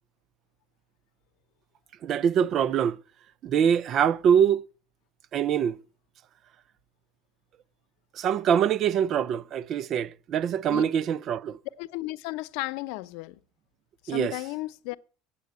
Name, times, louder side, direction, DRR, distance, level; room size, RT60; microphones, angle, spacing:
voice 1, 2.0-3.0 3.4-4.6 5.3-5.8 8.2-11.6 14.1-14.3, right 8 dB, 45° right, 0.5 m, -24 dB
voice 2, 11.8-13.4 14.0-15.0, left 20 dB, 75° left, 0.7 m, -34 dB
9.5 x 8.4 x 8.0 m
cardioid pair, 135°, 0 cm